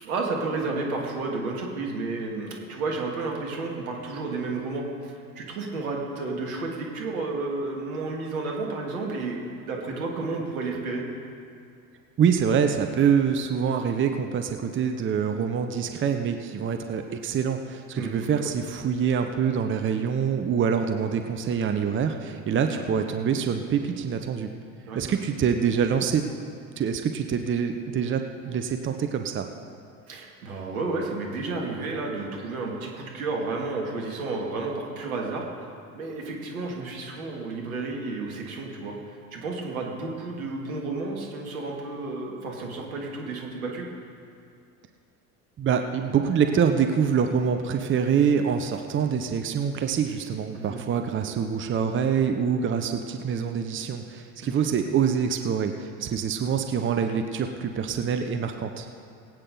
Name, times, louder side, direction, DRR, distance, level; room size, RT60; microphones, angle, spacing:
voice 1, 0.0-11.0 18.0-18.5 22.7-22.9 24.9-25.1 30.1-35.5 35.9-38.9 39.3-43.9 50.5-50.8 54.4-54.7, right 3 dB, 75° right, -1 dB, 2.4 m, -32 dB
voice 2, 12.2-24.5 24.9-26.2 26.8-29.5 45.6-58.9, right 7 dB, 30° right, 6 dB, 0.9 m, -25 dB
21.0 x 8.9 x 4.0 m, 2.5 s
hypercardioid pair, 70°, 42 cm